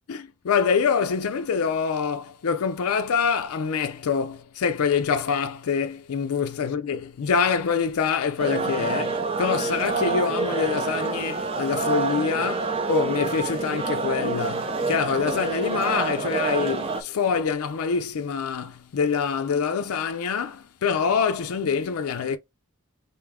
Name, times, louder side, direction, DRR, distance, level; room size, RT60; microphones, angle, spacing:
voice 1, 0.0-22.4, left 6 dB, 80° left, 0.4 m, -25 dB
sound 1, 8.4-17.0, right 4 dB, 25° right, 0.5 m, -27 dB
3.5 x 2.7 x 3.4 m
head